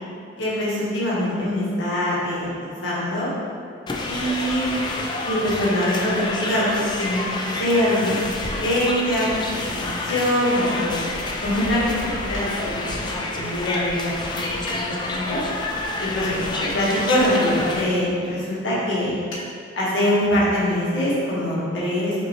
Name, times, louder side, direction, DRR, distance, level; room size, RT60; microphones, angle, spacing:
voice 1, 0.4-3.3 4.1-4.7 5.3-12.0 12.2-14.6 14.8-15.4 16.0-19.1 19.8-22.1, left 1 dB, 70° left, -8 dB, 1.2 m, -23 dB
sound 1, 3.9-17.8, left 2 dB, 25° left, 0.3 m, -28 dB
sound 2, 10.1-10.6 12.3-13.0 14.7-14.9 17.1-17.3 17.6-17.7 19.3-19.5 19.9-20.0, left 1 dB, 90° left, 0.8 m, -36 dB
4.9 x 3.1 x 2.9 m, 2.2 s
head